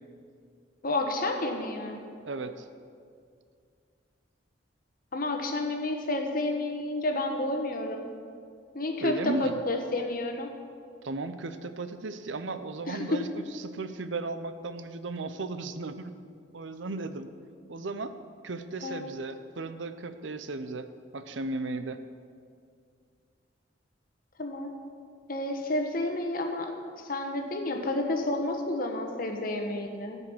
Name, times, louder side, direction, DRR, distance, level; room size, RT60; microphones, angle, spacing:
voice 1, 0.8-2.0 5.1-8.1 8.7-10.5 12.9-13.2 18.8-19.1 24.4-24.7 25.3-30.2, left 2 dB, 50° left, 4 dB, 1.2 m, -30 dB
voice 2, 2.2-2.7 9.0-9.6 11.0-16.1 16.5-17.3 17.7-18.2 18.4-22.0, right 3 dB, 85° right, 10 dB, 0.7 m, -35 dB
14.5 x 5.5 x 7.2 m, 2.3 s
head